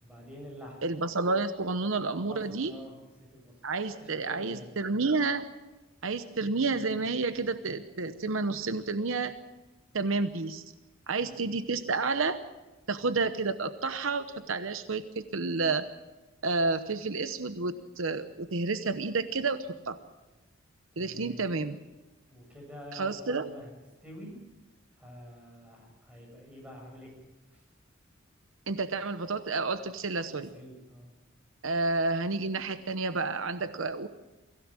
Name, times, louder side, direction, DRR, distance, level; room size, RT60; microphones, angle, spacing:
voice 1, 0.0-0.8 2.3-2.9 3.3-3.5 4.0-4.8 11.2-11.4 21.0-21.4 22.3-23.7 24.0-24.3 25.0-27.1 27.5-27.6 30.3-31.1, equal, 5° right, -1 dB, 7.8 m, -47 dB
voice 2, 0.8-2.7 3.6-5.4 6.0-9.4 9.9-10.6 11.1-12.4 12.9-15.9 16.4-20.0 21.0-21.8 22.9-23.5 28.7-30.5 31.6-34.1, right 3 dB, 75° right, 10 dB, 0.9 m, -30 dB
23.5 x 16.5 x 7.5 m, 1.1 s
head